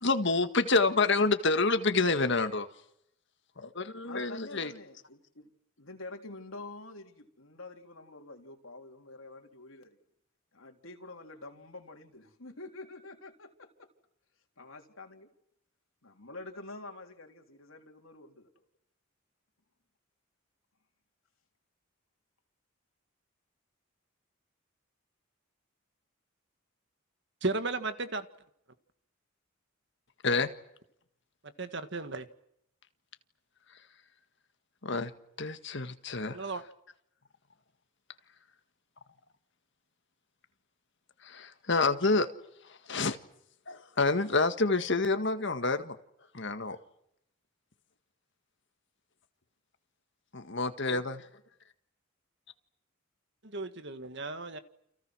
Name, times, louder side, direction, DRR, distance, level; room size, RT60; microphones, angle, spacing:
voice 1, 0.0-2.7 3.6-4.7 30.2-30.5 34.8-35.1 35.4-36.4 41.2-42.3 42.7-43.2 43.7-46.0 46.3-46.8 50.3-51.3, left 3 dB, 60° left, 1.8 m, -28 dB
voice 2, 4.0-5.5 5.8-10.0 10.5-13.9 14.6-15.3 16.0-18.5, left 2 dB, 75° left, 3.8 m, -47 dB
voice 3, 27.4-28.3 31.4-32.3 36.3-36.6 53.4-54.6, right 3 dB, 55° right, 1.8 m, -35 dB
29.5 x 28.0 x 6.3 m
head